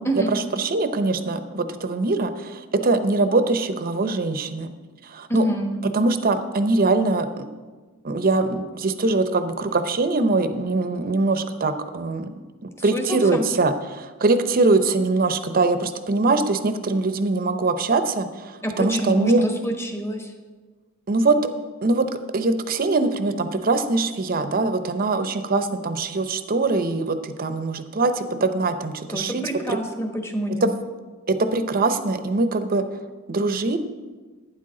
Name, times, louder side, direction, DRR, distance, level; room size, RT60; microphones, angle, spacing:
voice 1, 0.0-4.7 5.0-5.5 5.8-7.5 8.0-12.3 12.8-19.5 21.1-21.4 21.8-29.8 30.6-30.7 31.3-32.9 33.3-33.8, right 3 dB, 40° right, 10 dB, 0.7 m, -22 dB
voice 2, 5.3-5.8 12.9-13.4 18.6-20.3 29.1-30.7, equal, 10° left, 4 dB, 1.2 m, -27 dB
12.0 x 9.3 x 3.8 m, 1.4 s
head